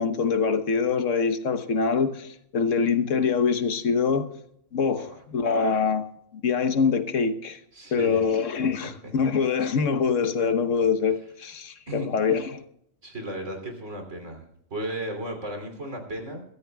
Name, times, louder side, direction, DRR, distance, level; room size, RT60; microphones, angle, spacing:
voice 1, 0.0-4.3 4.7-5.0 5.3-6.0 6.4-7.6 7.9-12.6, left 5 dB, 80° left, 1.4 m, -24 dB
voice 2, 7.7-8.2 9.0-9.1 11.9-12.1 13.0-16.4, right 1 dB, 75° right, 3.4 m, -35 dB
22.5 x 13.5 x 2.3 m
omnidirectional pair, 1.3 m